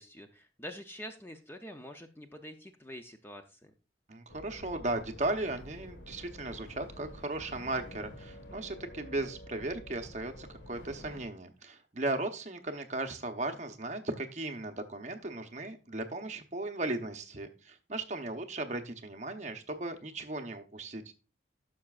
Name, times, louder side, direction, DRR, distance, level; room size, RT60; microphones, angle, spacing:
voice 1, 0.0-3.7, equal, 10° left, 6 dB, 0.5 m, -46 dB
voice 2, 4.1-21.1, right 2 dB, 40° right, 6 dB, 0.8 m, -36 dB
sound 1, 4.3-11.3, left 1 dB, 85° left, 1.5 m, -49 dB
12.0 x 6.0 x 2.4 m, 0.32 s
head